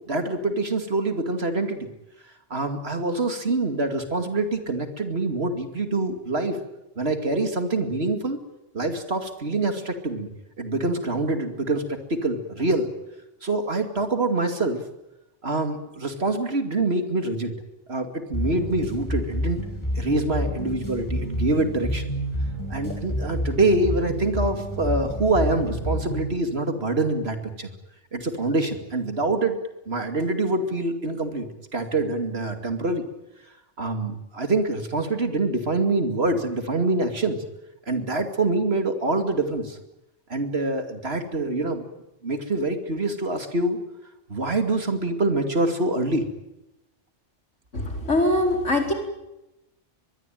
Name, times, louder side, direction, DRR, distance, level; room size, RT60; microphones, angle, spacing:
voice 1, 0.1-1.9 2.5-6.6 7.0-8.4 8.7-10.3 10.6-12.9 13.4-14.8 15.4-17.5 17.9-19.6 19.9-22.1 22.7-27.7 28.1-29.6 29.9-33.1 33.8-37.4 37.9-39.8 40.3-41.8 42.2-43.8 44.3-46.3, right 2 dB, 55° right, 6 dB, 2.8 m, -25 dB
sound 1, 18.3-26.4, equal, 15° left, 6.5 m, -29 dB
voice 2, 47.7-48.9, left 1 dB, 75° left, 3 dB, 5.0 m, -22 dB
23.0 x 21.5 x 9.3 m, 0.93 s
omnidirectional pair, 1.3 m